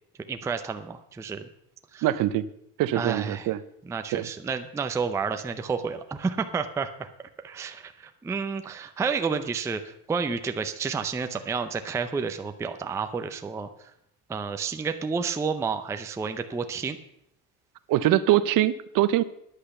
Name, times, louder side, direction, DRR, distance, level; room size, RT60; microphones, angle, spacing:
voice 1, 0.3-1.5 1.9-2.1 2.9-3.5 3.8-7.1 7.4-13.7 14.3-17.0, right 5 dB, 5° right, 7 dB, 0.4 m, -30 dB
voice 2, 2.0-2.5 2.8-3.6 4.1-4.3 17.9-19.2, right 13 dB, 50° right, 15 dB, 0.7 m, -23 dB
10.0 x 8.5 x 6.8 m, 0.76 s
cardioid pair, 150°, 43 cm